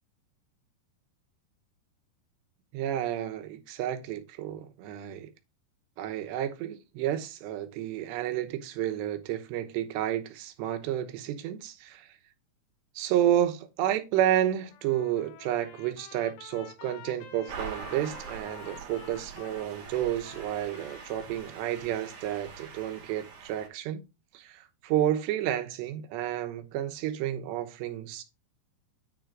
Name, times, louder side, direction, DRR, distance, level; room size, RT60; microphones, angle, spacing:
voice 1, 2.7-5.3 6.0-12.1 13.0-24.0 24.3-28.2, right 11 dB, 85° right, 3.2 m, -31 dB
Trumpet, 14.7-21.5, left 9 dB, 80° left, 3.1 m, -50 dB
sound 1, 17.5-23.7, right 6 dB, 55° right, 3.4 m, -43 dB
10.0 x 3.8 x 4.6 m
omnidirectional pair, 4.9 m